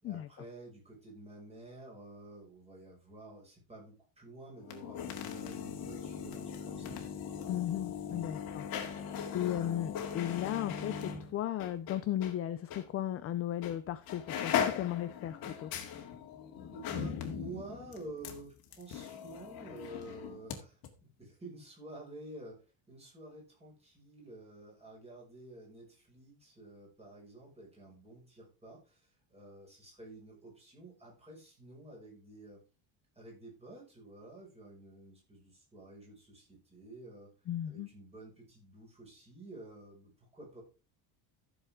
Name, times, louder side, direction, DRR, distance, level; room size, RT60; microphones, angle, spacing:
voice 1, 0.0-7.1 8.0-8.3 16.7-32.6 33.2-37.3 37.6-40.6, right 2 dB, 15° right, 5.7 m, -50 dB
sound 1, 4.6-12.4 12.7-12.8 13.6-13.8 14.1-20.6 20.8-20.9, left 8 dB, 50° left, 2.2 m, -39 dB
voice 2, 7.5-9.1 9.3-15.7 37.5-37.9, left 12 dB, 30° left, 0.4 m, -36 dB
14.0 x 7.2 x 3.6 m
cardioid pair, 170°, 47 cm